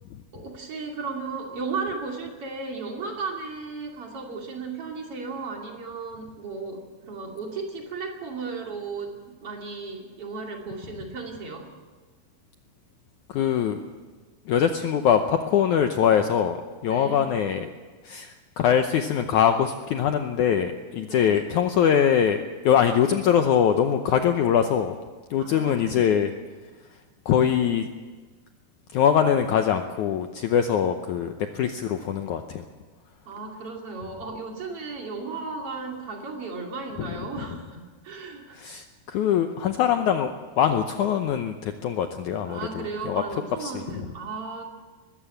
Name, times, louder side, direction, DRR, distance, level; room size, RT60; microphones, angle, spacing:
voice 1, 0.3-11.7 16.9-17.4 21.0-21.4 25.4-25.9 33.3-38.6 42.5-44.6, right 4 dB, 40° right, 1 dB, 3.0 m, -35 dB
voice 2, 13.3-13.8 14.5-17.7 18.1-25.0 25.3-26.3 27.3-27.9 28.9-32.6 37.0-37.1 38.6-43.2 43.6-43.7, left 8 dB, 90° left, 6 dB, 1.7 m, -23 dB
21.0 x 15.0 x 8.6 m, 1.4 s
omnidirectional pair, 4.7 m